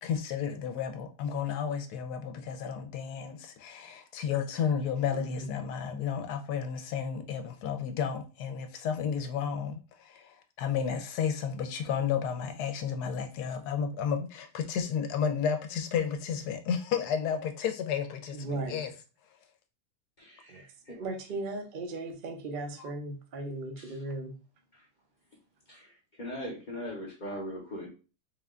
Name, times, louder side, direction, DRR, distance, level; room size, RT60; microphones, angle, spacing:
voice 1, 0.0-9.8 10.1-10.2 10.6-18.9 22.8-22.9, left 7 dB, 75° left, 1.1 m, -32 dB
voice 2, 5.1-5.5 18.3-18.8 20.5-20.6 20.9-24.3, right 2 dB, 50° right, 0.6 m, -37 dB
voice 3, 20.2-21.0 23.8-24.0 24.7-24.9 26.2-27.9, equal, 40° left, 0.7 m, -40 dB
3.7 x 2.2 x 3.6 m
omnidirectional pair, 1.7 m